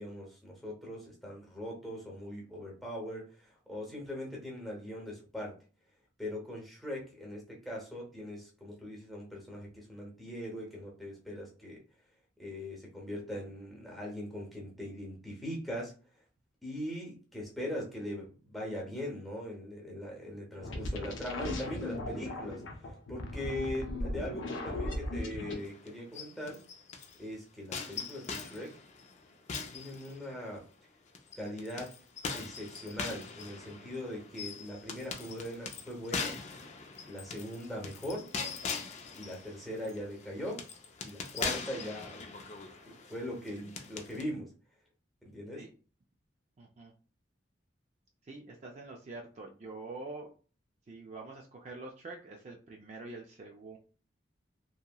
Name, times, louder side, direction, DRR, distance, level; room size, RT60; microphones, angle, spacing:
voice 1, 0.0-5.5 6.2-11.8 12.4-15.9 16.6-26.6 27.2-28.7 29.7-30.6 31.3-32.0 32.3-36.4 37.1-38.3 39.1-40.6 41.0-42.2 42.9-44.5 45.2-45.6, equal, ahead, -3 dB, 0.7 m, -41 dB
sound 1, 20.6-25.6, left 1 dB, 85° left, 0.5 m, -37 dB
sound 2, 25.6-27.2 27.7-30.6 31.1-44.2, left 5 dB, 35° left, 0.3 m, -41 dB
voice 2, 46.6-46.9 48.2-50.3 50.9-53.8, right 3 dB, 35° right, 0 dB, 0.3 m, -45 dB
2.8 x 2.7 x 2.2 m, 0.37 s
head